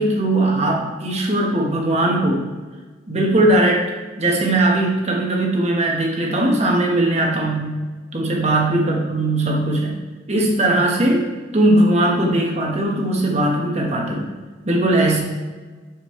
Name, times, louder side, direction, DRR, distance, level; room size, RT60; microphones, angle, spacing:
voice 1, 0.0-2.4 3.1-3.8 4.2-7.7 8.1-10.0 10.3-14.3 14.7-15.2, right 1 dB, 35° right, -1 dB, 1.4 m, -19 dB
9.4 x 6.6 x 3.3 m, 1.4 s
head